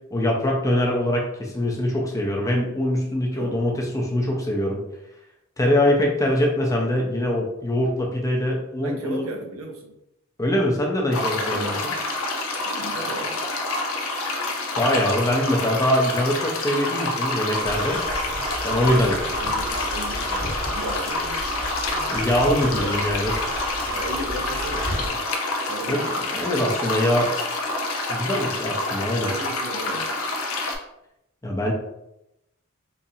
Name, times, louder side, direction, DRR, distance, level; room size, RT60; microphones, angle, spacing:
voice 1, 0.1-4.8 5.6-9.3 10.4-11.9 14.8-18.0 18.6-19.1 22.1-23.3 25.9-27.3 28.1-29.3 31.4-31.7, left 1 dB, 15° left, -1 dB, 0.6 m, -23 dB
voice 2, 3.3-3.6 8.8-10.0 11.4-11.9 12.7-13.4 18.8-21.5 22.6-22.9 23.9-25.3 25.7-26.1 29.2-30.1, right 1 dB, 80° right, 1 dB, 0.7 m, -35 dB
sound 1, 11.1-30.7, left 2 dB, 85° left, 0.6 m, -28 dB
sound 2, 17.6-25.1, equal, 30° right, 1.0 m, -32 dB
4.1 x 2.5 x 2.6 m, 0.85 s
head